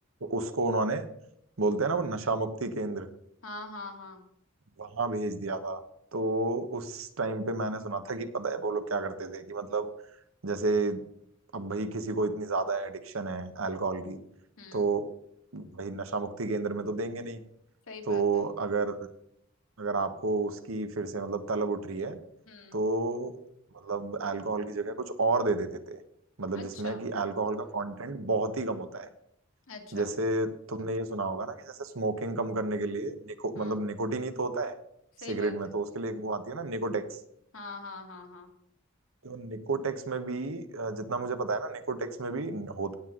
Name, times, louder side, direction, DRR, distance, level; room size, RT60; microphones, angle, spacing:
voice 1, 0.2-1.0 1.6-3.1 4.8-5.8 6.1-9.9 10.4-11.0 11.5-14.2 14.7-15.0 15.5-17.4 18.1-19.1 19.8-22.2 22.7-23.3 23.7-26.0 26.4-29.1 29.9-34.7 35.3-37.2 39.2-42.9, right 3 dB, 90° right, 9 dB, 1.1 m, -31 dB
voice 2, 3.4-4.2 14.6-14.9 17.9-18.4 22.5-22.8 26.6-27.0 29.7-30.1 33.6-33.8 35.2-35.7 37.5-38.5, left 3 dB, 75° left, 3 dB, 1.9 m, -43 dB
17.5 x 7.8 x 3.8 m, 0.73 s
head